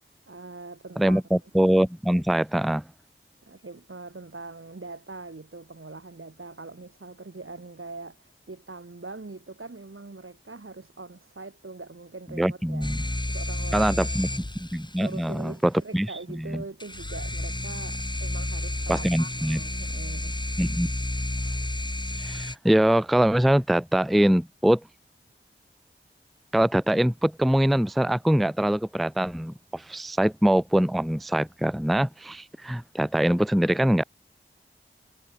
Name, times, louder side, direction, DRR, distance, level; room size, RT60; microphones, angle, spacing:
voice 1, 0.3-1.5 3.4-14.4 15.0-20.4, right 3 dB, 80° right, 6.5 m, -42 dB
voice 2, 1.0-2.8 12.3-13.0 13.7-14.3 14.6-16.1 16.3-16.6 18.9-19.6 20.6-20.9 22.2-24.8 26.5-34.0, right 1 dB, ahead, 0.4 m, -23 dB
sound 1, 12.8-15.1 16.8-22.5, left 1 dB, 20° left, 1.3 m, -31 dB
wide cardioid pair, 45°, 21 cm